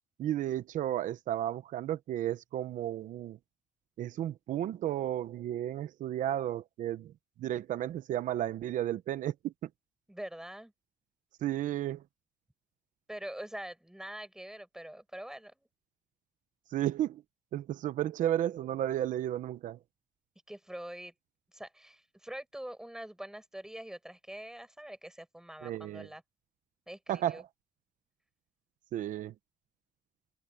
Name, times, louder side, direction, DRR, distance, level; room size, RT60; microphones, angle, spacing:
voice 1, 0.2-3.4 4.0-7.1 7.4-9.7 11.4-12.0 16.7-17.2 17.5-19.8 25.6-26.1 27.1-27.5 28.9-29.3, right 12 dB, 85° right, 0.7 m, -33 dB
voice 2, 10.1-10.7 13.1-15.7 20.5-21.1 21.5-26.2 26.9-27.4, right 1 dB, 5° right, 7.2 m, -44 dB
wide cardioid pair, 155°, 13 cm